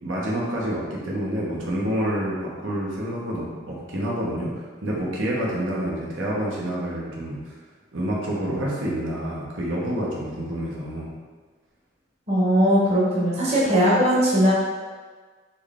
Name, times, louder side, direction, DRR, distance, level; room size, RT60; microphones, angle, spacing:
voice 1, 0.0-7.6 7.9-11.1, right 1 dB, 85° right, -4 dB, 1.0 m, -28 dB
voice 2, 12.3-14.5, equal, 35° right, -6 dB, 1.0 m, -19 dB
4.5 x 3.2 x 3.5 m, 1.4 s
head